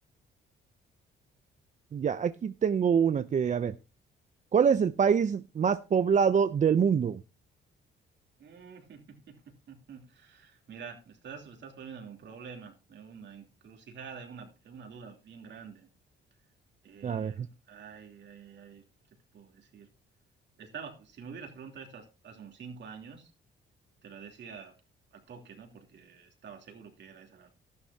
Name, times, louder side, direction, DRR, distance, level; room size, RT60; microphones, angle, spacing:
voice 1, 1.9-3.7 4.5-7.2 17.0-17.3, right 7 dB, 40° right, 0.6 m, -25 dB
voice 2, 8.4-9.4 9.7-15.9 16.8-18.8 19.3-19.9 20.6-23.3 24.0-24.7 25.1-27.5, right 6 dB, 65° right, 3.1 m, -47 dB
13.0 x 11.0 x 2.8 m
cardioid pair, 90°, 20 cm